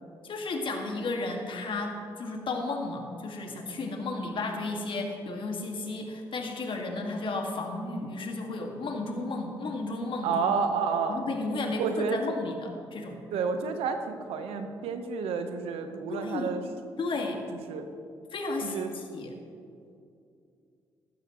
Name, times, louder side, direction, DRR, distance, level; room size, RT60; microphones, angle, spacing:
voice 1, 0.2-10.4 11.1-13.2 16.1-16.5 17.0-17.4 18.3-19.3, left 2 dB, 60° left, 2 dB, 1.8 m, -33 dB
voice 2, 10.2-11.2 11.8-12.3 13.3-16.6 17.7-17.9 18.6-18.9, right 5 dB, 85° right, 7 dB, 0.9 m, -30 dB
14.5 x 12.5 x 3.0 m, 2.5 s
supercardioid pair, 55°, 10 cm